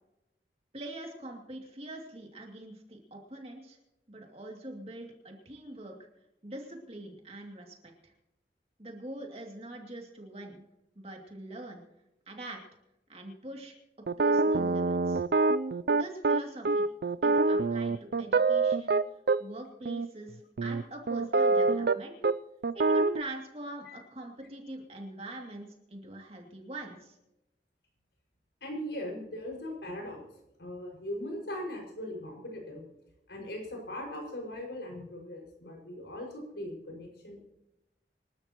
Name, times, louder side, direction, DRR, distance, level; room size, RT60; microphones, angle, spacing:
voice 1, 0.7-3.8 4.1-5.9 6.4-7.8 8.0-8.1 8.8-10.6 11.0-11.8 12.3-12.6 13.1-13.7 14.2-15.2 15.9-16.9 17.2-19.0 19.4-22.2 22.7-27.2, right 1 dB, 35° right, 2 dB, 2.5 m, -43 dB
sound 1, 14.1-19.4 19.9-20.1 20.6-22.0 22.2-22.3 22.6-23.2, right 3 dB, 60° right, 0.4 m, -25 dB
voice 2, 28.6-30.2 30.6-32.8 33.3-37.6, left 1 dB, 80° left, 0 dB, 5.5 m, -39 dB
26.5 x 12.5 x 3.0 m, 0.92 s
head